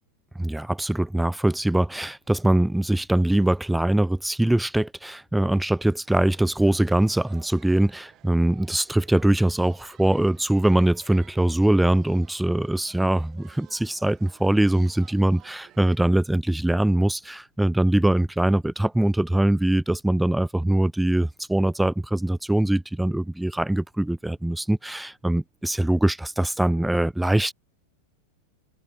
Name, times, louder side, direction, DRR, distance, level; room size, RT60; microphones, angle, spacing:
voice 1, 0.4-27.5, right 1 dB, 5° right, 0.3 m, -22 dB
sound 1, 6.0-16.0, right 13 dB, 30° right, 1.1 m, -54 dB
figure-of-eight pair, 90°, 0 cm